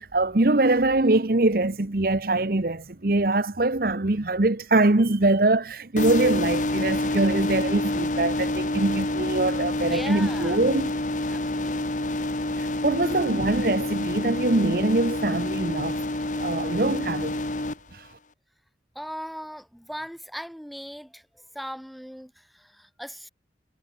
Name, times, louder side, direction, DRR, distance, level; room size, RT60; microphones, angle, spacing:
voice 1, 0.0-11.0 12.6-16.0 16.4-17.4 17.9-18.1, right 2 dB, 50° right, 1.1 m, -23 dB
sound 1, 6.0-17.7, left 1 dB, 45° left, 1.5 m, -28 dB
voice 2, 9.9-10.6 11.3-11.8 18.9-21.2 21.5-23.3, equal, ahead, 2.6 m, -38 dB
head